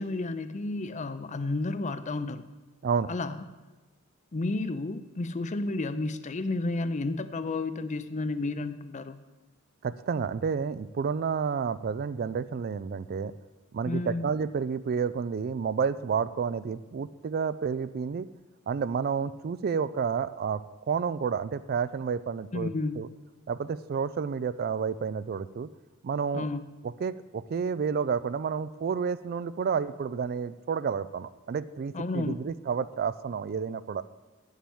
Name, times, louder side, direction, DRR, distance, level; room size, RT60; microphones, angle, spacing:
voice 1, 0.0-2.4 3.1-3.4 4.3-9.2 13.8-14.2 22.5-23.0 26.3-26.6 31.9-32.4, left 2 dB, 35° left, 12 dB, 0.5 m, -31 dB
voice 2, 9.8-13.3 13.7-18.3 18.7-20.6 20.9-23.1 23.5-25.7 26.0-26.5 27.0-34.0, right 6 dB, 45° right, 16 dB, 0.3 m, -30 dB
8.9 x 7.4 x 7.0 m, 1.2 s
head